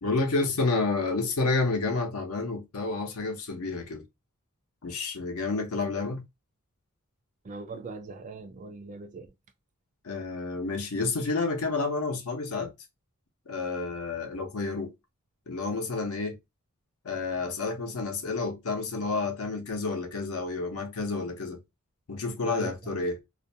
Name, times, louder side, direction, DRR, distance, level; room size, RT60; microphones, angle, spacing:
voice 1, 0.0-4.0 4.8-6.2 10.0-12.7 13.5-14.9 15.5-16.4 17.0-21.6 22.1-23.2, left 3 dB, 85° left, 0.7 m, -30 dB
voice 2, 7.4-9.3 22.5-23.0, right 4 dB, 35° right, 0.3 m, -40 dB
2.5 x 2.1 x 2.6 m
head